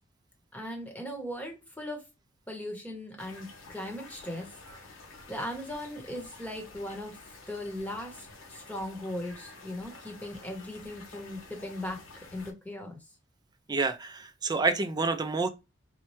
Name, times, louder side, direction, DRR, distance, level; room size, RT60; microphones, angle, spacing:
voice 1, 0.5-2.0 2.5-4.5 5.3-7.2 7.5-13.0, left 1 dB, 10° left, 1.0 m, -38 dB
sound 1, 3.2-12.5, left 3 dB, 80° left, 1.0 m, -50 dB
voice 2, 13.7-15.5, right 3 dB, 20° right, 0.4 m, -28 dB
4.2 x 2.3 x 3.1 m
head